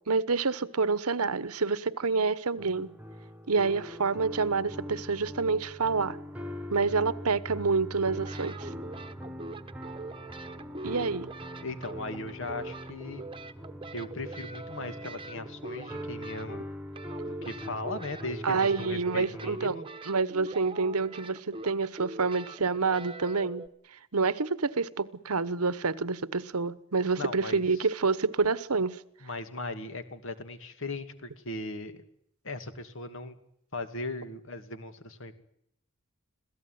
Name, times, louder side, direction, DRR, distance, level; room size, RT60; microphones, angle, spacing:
voice 1, 0.1-2.9 3.5-6.2 6.7-8.7 10.8-11.3 18.4-19.8 20.0-23.7 24.1-29.0, right 4 dB, 85° right, 1.1 m, -28 dB
sound 1, 2.6-19.6, equal, 5° right, 1.5 m, -42 dB
sound 2, 8.0-16.7 16.9-23.7, right 2 dB, 25° right, 1.2 m, -42 dB
voice 2, 11.6-13.2 13.9-16.6 17.2-19.9 27.2-27.6 29.2-32.0 32.4-33.4 33.7-35.3, left 2 dB, 60° left, 2.5 m, -38 dB
26.5 x 17.0 x 9.5 m
head